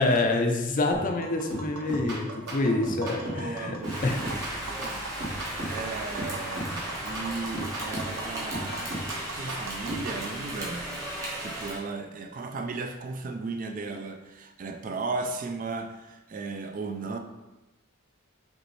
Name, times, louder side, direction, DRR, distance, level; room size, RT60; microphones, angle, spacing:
voice 1, 0.0-3.8 4.0-4.3, left 2 dB, 40° left, 3 dB, 0.5 m, -26 dB
sound 1, 0.9-1.2 1.5-3.5 3.8-5.9 6.2-8.2 8.5-10.3, right 1 dB, 55° right, 1.4 m, -36 dB
Tap, 1.2-10.3, right 2 dB, 90° right, 0.8 m, -41 dB
voice 2, 3.1-5.0 5.7-8.9 9.4-10.9 11.4-17.2, right 3 dB, 40° right, 5 dB, 0.3 m, -36 dB
Rain, 3.8-11.8, right 1 dB, 15° right, 1.0 m, -36 dB
5.2 x 3.1 x 3.1 m, 1.0 s
head